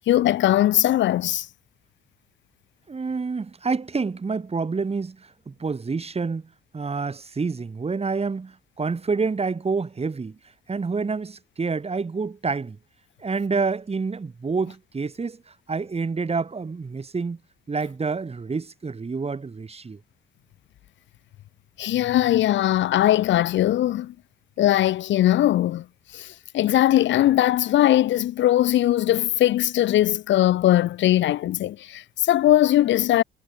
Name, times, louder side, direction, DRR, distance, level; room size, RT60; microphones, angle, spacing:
voice 1, 0.1-1.5 21.8-24.1 24.6-25.8 26.1-33.2, left 13 dB, 70° left, 0.6 m, -20 dB
voice 2, 2.9-6.4 6.7-10.4 10.7-12.8 13.2-15.4 15.7-17.4 17.7-20.0, right 4 dB, 30° right, 5.5 m, -28 dB
cardioid pair, 90°, 20 cm